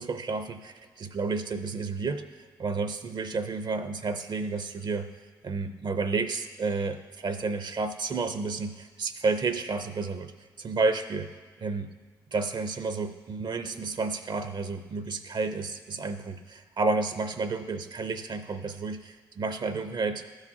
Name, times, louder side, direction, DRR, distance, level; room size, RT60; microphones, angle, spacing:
voice 1, 0.0-5.1 5.4-10.3 10.6-11.3 11.6-11.9 12.3-20.3, right 4 dB, 55° right, 8 dB, 0.6 m, -31 dB
13.0 x 4.9 x 2.8 m, 1.4 s
supercardioid pair, 50°, 9 cm